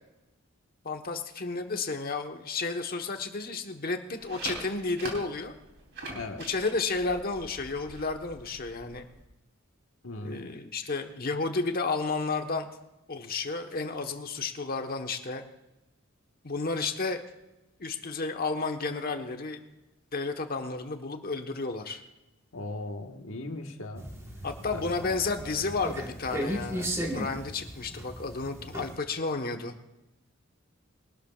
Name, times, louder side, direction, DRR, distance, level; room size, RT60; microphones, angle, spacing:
voice 1, 0.8-5.5 6.5-9.1 10.2-12.7 13.1-15.4 16.4-17.2 17.8-19.6 20.1-22.0 24.4-26.9 27.1-29.7, left 3 dB, 50° left, 5 dB, 1.2 m, -32 dB
sound 1, 4.1-9.2, right 2 dB, 60° right, 3.4 m, -43 dB
voice 2, 6.1-6.5 10.0-10.6 22.5-24.1 24.7-24.8, left 2 dB, 80° left, 3 dB, 1.5 m, -38 dB
sound 2, 23.9-29.0, equal, 15° right, 1.4 m, -36 dB
22.5 x 12.5 x 2.4 m, 0.99 s
head